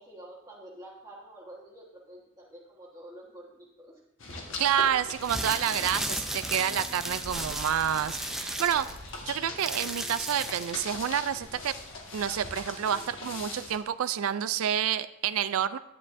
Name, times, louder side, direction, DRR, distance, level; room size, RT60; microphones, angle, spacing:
voice 1, 0.0-3.9, right 1 dB, 20° right, -6 dB, 1.3 m, -48 dB
sound 1, 4.2-13.8, left 2 dB, 65° left, 1.5 m, -42 dB
voice 2, 4.6-8.9 9.3-11.7 12.1-15.8, right 9 dB, 70° right, 14 dB, 0.4 m, -28 dB
sound 2, 5.1-10.8, right 1 dB, ahead, 0.5 m, -35 dB
10.5 x 9.6 x 2.6 m, 0.85 s
head